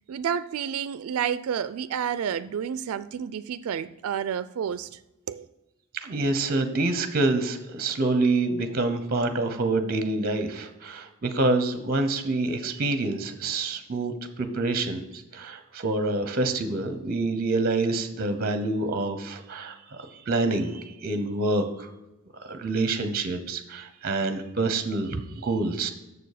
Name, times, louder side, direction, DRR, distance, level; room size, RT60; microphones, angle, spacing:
voice 1, 0.1-5.0 5.3-5.5, right 8 dB, 80° right, 0.3 m, -30 dB
voice 2, 6.0-21.9 22.4-25.9, right 2 dB, 45° right, 0.7 m, -27 dB
6.9 x 6.7 x 4.9 m
head